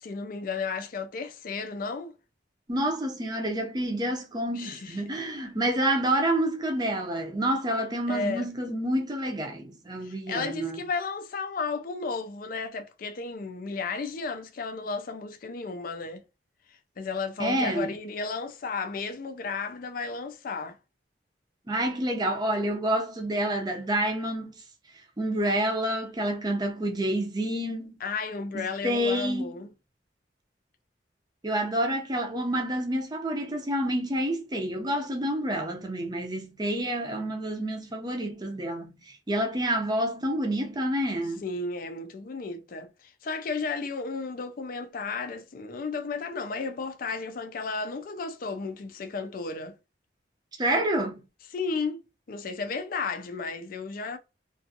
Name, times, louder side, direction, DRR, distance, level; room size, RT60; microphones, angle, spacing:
voice 1, 0.0-2.1 4.6-5.0 8.1-8.5 10.0-16.2 17.0-20.8 28.0-29.7 41.4-42.9 43.2-49.8 51.5-52.0 52.3-54.2, left 4 dB, 50° left, 0.4 m, -33 dB
voice 2, 2.7-10.8 17.4-17.9 21.7-24.5 25.2-27.9 28.5-29.5 31.4-41.4 50.6-51.2, right 1 dB, 20° right, 0.5 m, -28 dB
2.5 x 2.3 x 2.6 m
head